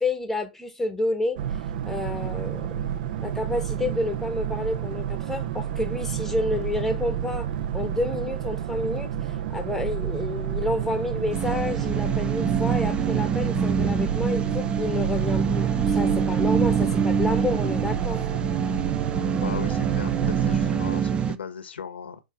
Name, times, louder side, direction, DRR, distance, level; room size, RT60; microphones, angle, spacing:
voice 1, 0.0-1.4 1.8-2.7 3.2-7.5 7.7-9.1 9.5-18.2, left 2 dB, 5° left, 1.2 m, -29 dB
Boat Water vehicle, 1.4-20.8, right 9 dB, 60° right, 1.0 m, -30 dB
sound 1, 11.3-21.4, right 6 dB, 15° right, 0.5 m, -25 dB
voice 2, 19.4-22.2, left 7 dB, 90° left, 1.3 m, -37 dB
6.3 x 2.9 x 5.7 m
hypercardioid pair, 130°, 6 cm